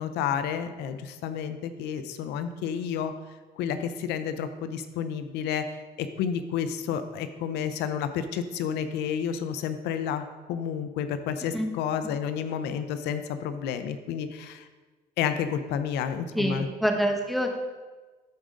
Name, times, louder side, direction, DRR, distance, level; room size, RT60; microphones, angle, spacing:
voice 1, 0.0-3.1 3.6-14.7 15.2-16.7, left 8 dB, 85° left, 10 dB, 0.6 m, -30 dB
voice 2, 16.3-17.6, equal, ahead, 3 dB, 1.1 m, -26 dB
13.5 x 5.1 x 3.8 m, 1.3 s
cardioid pair, 110°, 17 cm